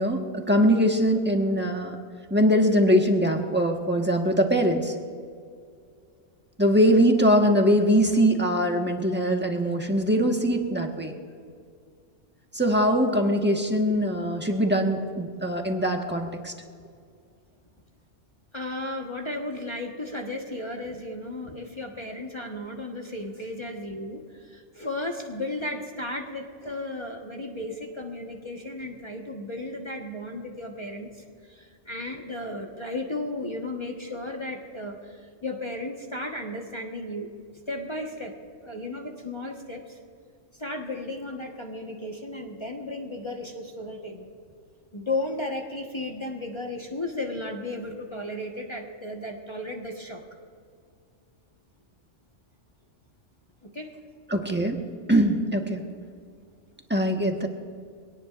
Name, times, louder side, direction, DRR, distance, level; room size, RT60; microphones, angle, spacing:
voice 1, 0.0-2.0 2.3-4.9 6.6-11.1 12.5-16.5 54.3-54.8 55.1-55.8 56.9-57.5, equal, 10° right, 2 dB, 1.4 m, -22 dB
voice 2, 18.5-37.3 37.7-38.4 38.6-40.0 40.6-44.3 44.9-50.2 53.6-53.9, left 1 dB, 25° left, 0 dB, 1.4 m, -34 dB
24.0 x 18.0 x 2.6 m, 2.2 s
omnidirectional pair, 1.3 m